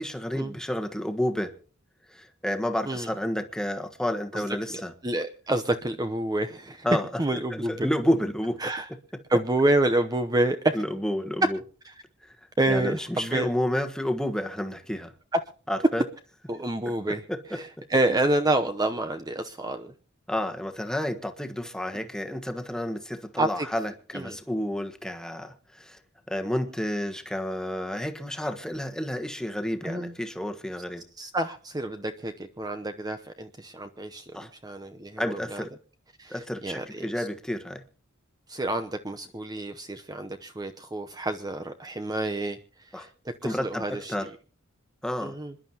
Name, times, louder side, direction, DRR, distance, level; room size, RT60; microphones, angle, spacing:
voice 1, 0.0-1.5 2.1-4.9 6.8-7.0 7.5-8.6 10.7-11.6 12.7-15.1 15.7-16.0 17.3-17.6 20.3-26.0 26.3-31.0 34.3-34.5 35.2-35.7 36.3-37.8 42.9-43.1 43.4-44.3 45.0-45.4, left 1 dB, 5° left, 1.4 m, -30 dB
voice 2, 4.7-6.9 7.2-7.9 8.6-8.9 9.3-10.8 11.8-11.9 12.6-13.5 15.3-15.4 16.5-17.2 17.5-19.9 21.9-22.1 23.4-23.7 24.1-24.4 29.8-30.1 31.2-35.6 36.2-37.3 38.5-44.1 45.2-45.5, right 1 dB, 20° right, 0.8 m, -28 dB
26.5 x 11.5 x 2.9 m
head